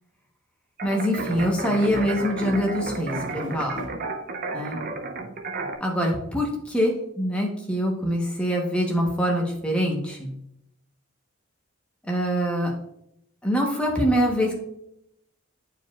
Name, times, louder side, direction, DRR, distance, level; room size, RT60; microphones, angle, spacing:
voice 1, 0.8-3.8 4.5-4.8 5.8-10.3 12.1-12.7 13.4-14.5, equal, 5° left, -1 dB, 1.0 m, -24 dB
sound 1, 0.8-5.8, right 3 dB, 45° right, 0.5 m, -33 dB
sound 2, 1.2-3.9, left 3 dB, 40° left, 1.8 m, -36 dB
9.1 x 4.6 x 2.4 m, 0.77 s
head